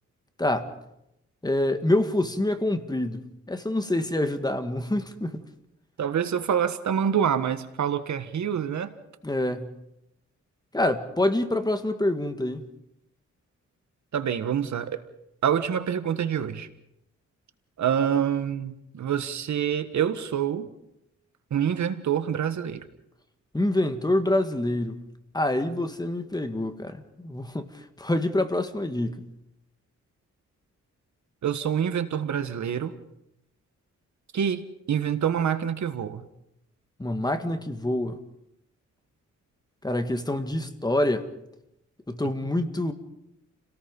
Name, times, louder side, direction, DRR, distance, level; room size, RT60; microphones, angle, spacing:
voice 1, 0.4-0.7 1.4-5.4 9.2-9.7 10.7-12.6 23.5-25.0 25.3-29.2 37.0-38.2 39.8-41.3 42.1-42.9, left 1 dB, 15° left, 8 dB, 1.8 m, -26 dB
voice 2, 6.0-8.9 14.1-15.0 15.4-16.7 17.8-20.7 21.5-22.8 31.4-32.9 34.3-34.6 34.9-36.2, right 8 dB, 75° right, 10 dB, 1.6 m, -26 dB
29.5 x 18.0 x 5.4 m, 0.82 s
wide cardioid pair, 115°, 29 cm